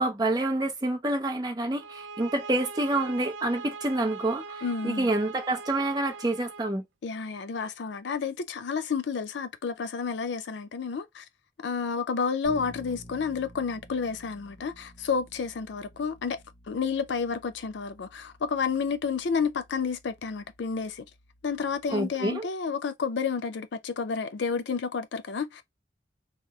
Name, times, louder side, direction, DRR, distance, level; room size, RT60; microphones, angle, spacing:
voice 1, 0.0-6.8 21.9-22.5, right 2 dB, 20° right, 0.5 m, -28 dB
sound 1, 1.8-6.7, right 4 dB, 90° right, 0.4 m, -41 dB
voice 2, 4.6-5.1 7.0-11.3 11.6-16.4 16.7-21.0 21.4-25.6, left 5 dB, 75° left, 0.4 m, -30 dB
Bass guitar, 12.4-22.3, left 1 dB, 25° left, 1.0 m, -52 dB
2.8 x 2.0 x 3.4 m
head